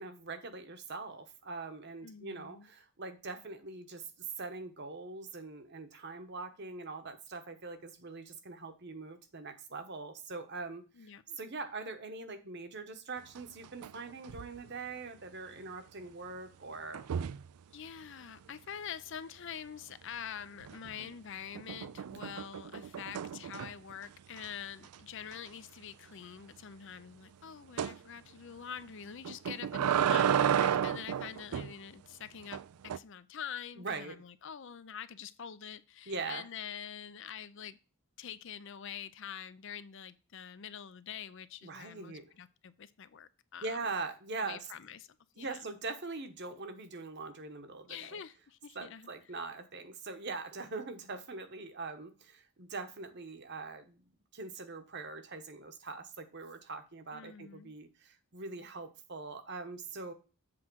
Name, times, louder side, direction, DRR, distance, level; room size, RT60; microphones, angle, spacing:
voice 1, 0.0-4.1 4.4-17.0 33.8-34.2 36.1-36.4 41.6-42.3 43.6-44.6 45.4-48.2 48.7-54.0 54.3-60.1, right 3 dB, 50° right, 8 dB, 1.0 m, -42 dB
voice 2, 2.0-2.7 10.9-11.4 17.7-37.8 38.2-43.8 44.4-45.1 45.4-45.7 47.9-49.1 57.1-57.8, left 8 dB, 55° left, 14 dB, 0.5 m, -45 dB
sound 1, 13.4-14.0 14.2-14.6 16.9-17.5 20.6-21.1 21.5-23.9 24.4-24.5 24.8-24.9 25.3-25.4 27.8-28.0 29.2-31.7 32.5-33.0, right 8 dB, 85° right, 0.4 m, -32 dB
7.6 x 3.7 x 6.1 m, 0.33 s
head